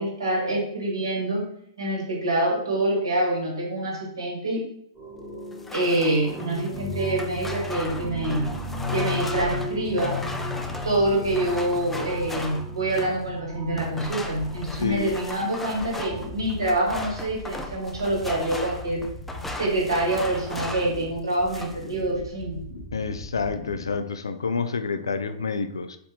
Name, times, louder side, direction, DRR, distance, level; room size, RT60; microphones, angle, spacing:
voice 1, 0.0-1.4 1.8-4.6 5.7-8.5 8.9-10.1 10.8-19.1 19.6-22.6, right 1 dB, 80° right, -2 dB, 1.5 m, -26 dB
sound 1, 4.9-16.3, left 1 dB, 15° right, 1.4 m, -35 dB
sound 2, 5.5-13.2 13.7-21.0 21.3-21.9, left 1 dB, 5° left, 0.4 m, -37 dB
sound 3, 14.2-24.0, left 2 dB, 60° left, 1.2 m, -40 dB
voice 2, 22.9-26.0, left 4 dB, 85° left, 10 dB, 0.3 m, -28 dB
4.3 x 2.6 x 2.9 m, 0.71 s
hypercardioid pair, 115°, 2 cm